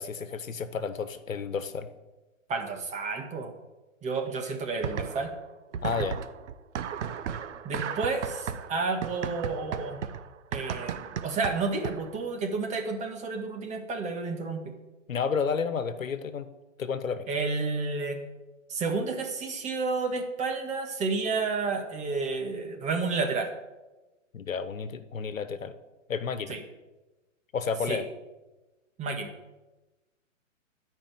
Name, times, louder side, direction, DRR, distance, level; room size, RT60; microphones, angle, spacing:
voice 1, 0.0-1.9 5.8-6.2 15.1-16.5 16.8-17.3 24.3-25.7 26.1-26.6 27.5-28.0, left 6 dB, 85° left, 11 dB, 1.3 m, -31 dB
voice 2, 2.5-3.5 4.0-5.3 7.6-10.0 10.5-14.7 17.3-18.2 18.7-23.5 26.5-26.6 27.9-28.0 29.0-29.3, right 4 dB, 20° right, 3 dB, 1.6 m, -31 dB
sound 1, 4.8-5.4 5.7-12.2, right 8 dB, 60° right, 1.1 m, -35 dB
13.0 x 5.5 x 9.2 m, 1.1 s
hypercardioid pair, 135°, 39 cm